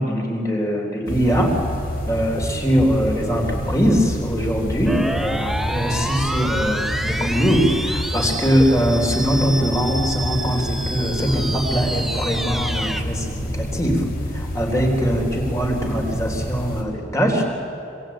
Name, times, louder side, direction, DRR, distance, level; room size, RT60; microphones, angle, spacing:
voice 1, 0.0-1.5 2.1-14.0 14.3-17.4, equal, 15° left, 1 dB, 3.7 m, -21 dB
sound 1, 1.1-16.8, equal, 50° left, 4.2 m, -28 dB
sound 2, 4.9-13.0, right 1 dB, ahead, 0.8 m, -29 dB
25.5 x 25.0 x 8.9 m, 2.8 s
head